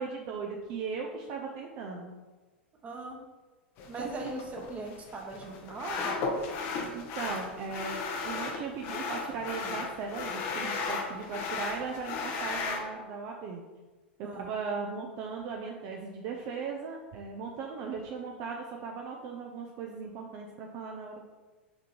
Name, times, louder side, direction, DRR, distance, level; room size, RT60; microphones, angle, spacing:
voice 1, 0.0-2.1 4.0-4.1 6.9-13.6 14.2-21.2, right 5 dB, 40° right, 1 dB, 0.7 m, -38 dB
voice 2, 2.8-3.2 3.9-6.2 14.2-14.5, right 2 dB, 20° right, 1 dB, 1.1 m, -39 dB
sound 1, 3.8-12.8, left 4 dB, 40° left, 1.0 m, -35 dB
6.6 x 3.8 x 4.4 m, 1.2 s
figure-of-eight pair, 90°, 6 cm